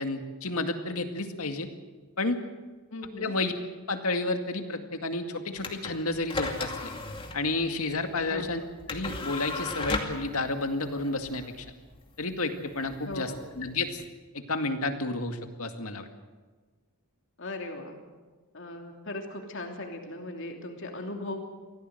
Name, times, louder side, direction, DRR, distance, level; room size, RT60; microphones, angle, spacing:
voice 1, 0.0-1.7 2.2-2.4 3.2-3.5 3.9-6.9 7.3-8.6 8.9-11.7 12.2-14.0 14.3-16.1, left 2 dB, 75° left, 6 dB, 2.2 m, -31 dB
voice 2, 2.9-3.3 8.3-8.7 13.0-13.5 17.4-18.0 18.5-21.5, left 2 dB, 55° left, 3 dB, 3.0 m, -38 dB
sound 1, 5.6-14.1, left 3 dB, 25° left, 2.3 m, -37 dB
24.0 x 16.5 x 7.9 m, 1.3 s
head